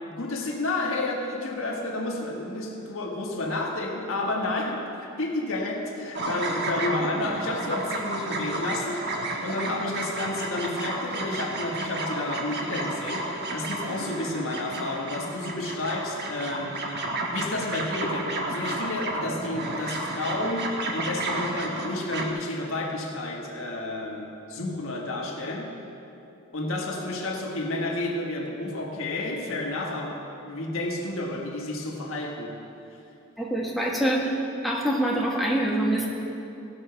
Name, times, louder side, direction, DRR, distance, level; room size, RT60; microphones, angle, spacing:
voice 1, 0.0-16.8 17.3-25.8 26.5-32.6, left 2 dB, 65° left, 0 dB, 1.5 m, -31 dB
sound 1, 6.1-22.3, right 2 dB, 50° right, 1.2 m, -32 dB
voice 2, 33.4-34.3 34.6-36.1, right 1 dB, ahead, -2 dB, 1.2 m, -25 dB
17.0 x 6.5 x 5.7 m, 2.8 s
head